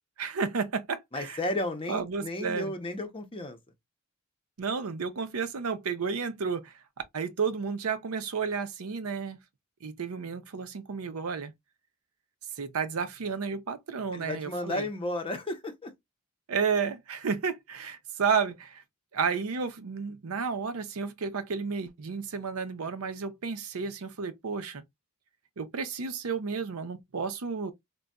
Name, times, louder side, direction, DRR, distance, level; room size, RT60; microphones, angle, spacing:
voice 1, 0.2-1.4 1.9-2.7 4.6-6.7 7.1-9.4 9.8-11.5 12.6-14.9 16.5-18.8 19.1-24.8 25.6-27.7, right 5 dB, 90° right, 0.6 m, -32 dB
voice 2, 1.1-3.6 14.1-15.9, left 1 dB, 25° left, 0.7 m, -33 dB
3.9 x 2.2 x 2.3 m
head